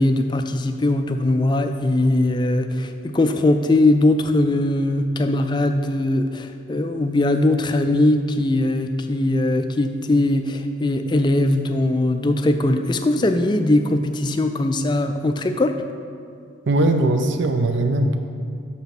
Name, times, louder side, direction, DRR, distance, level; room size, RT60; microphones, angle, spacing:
voice 1, 0.0-15.8, left 1 dB, 20° left, 7 dB, 0.3 m, -20 dB
voice 2, 16.7-18.2, right 2 dB, 60° right, 6 dB, 0.6 m, -19 dB
6.2 x 5.7 x 5.9 m, 2.3 s
head